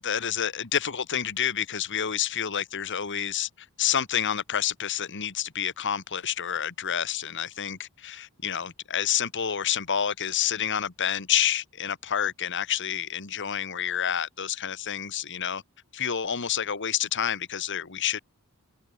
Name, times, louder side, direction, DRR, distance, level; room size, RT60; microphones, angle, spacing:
voice 1, 0.0-15.6 15.9-18.2, left 9 dB, 55° left, 1.6 m, -29 dB
head